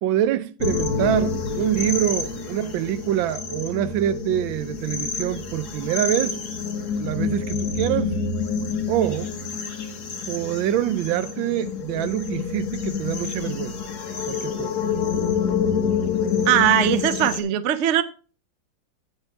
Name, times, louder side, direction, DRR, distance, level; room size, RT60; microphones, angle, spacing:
voice 1, 0.0-6.4 7.0-8.2 8.9-9.3 10.3-13.8 14.3-14.7, right 11 dB, 90° right, 1.4 m, -25 dB
sound 1, 0.6-17.4, left 5 dB, 60° left, 1.9 m, -27 dB
voice 2, 16.5-18.0, right 11 dB, 65° right, 0.7 m, -20 dB
9.1 x 8.9 x 3.4 m
omnidirectional pair, 2.1 m